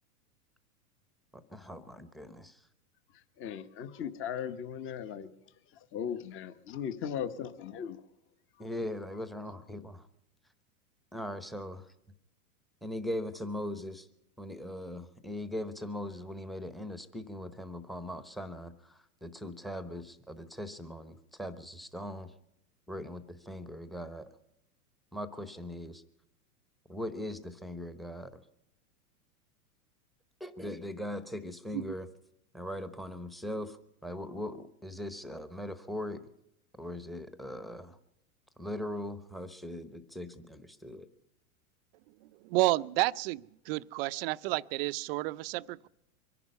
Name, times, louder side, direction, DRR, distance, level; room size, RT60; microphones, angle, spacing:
voice 1, 1.3-2.6 8.6-10.0 11.1-11.9 12.8-14.1 14.4-22.3 22.9-24.3 25.1-26.0 26.9-28.4 30.4-32.1 32.5-33.8 34.0-36.2 36.8-38.0 38.6-41.1, left 1 dB, ahead, 12 dB, 0.9 m, -40 dB
voice 2, 3.4-5.3 5.7-8.0, left 8 dB, 25° left, 12 dB, 1.0 m, -38 dB
voice 3, 42.2-45.9, right 19 dB, 40° right, 16 dB, 0.5 m, -31 dB
24.0 x 11.0 x 5.5 m, 0.82 s
hypercardioid pair, 125°, 44 cm